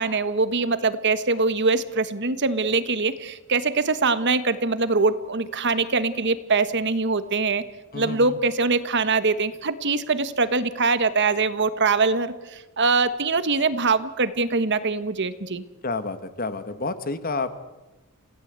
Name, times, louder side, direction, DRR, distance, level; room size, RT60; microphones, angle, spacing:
voice 1, 0.0-7.6 7.9-15.6, right 4 dB, 50° right, 13 dB, 1.3 m, -23 dB
voice 2, 7.9-8.4 15.8-17.5, left 3 dB, 40° left, 11 dB, 1.6 m, -29 dB
27.5 x 17.0 x 8.2 m, 1.1 s
head